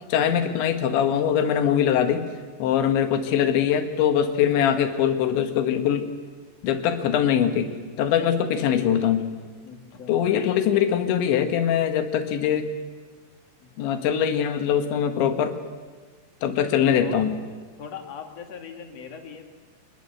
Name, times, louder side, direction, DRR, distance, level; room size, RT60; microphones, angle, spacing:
voice 1, 0.1-2.3 2.6-6.1 6.6-9.3 10.1-12.7 13.8-15.6 16.4-17.4, left 9 dB, 70° left, 7 dB, 3.7 m, -22 dB
voice 2, 9.6-10.4 13.6-13.7 17.0-17.2 17.8-19.4, left 6 dB, 50° left, 4 dB, 2.1 m, -40 dB
25.5 x 20.5 x 7.9 m, 1.5 s
omnidirectional pair, 5.7 m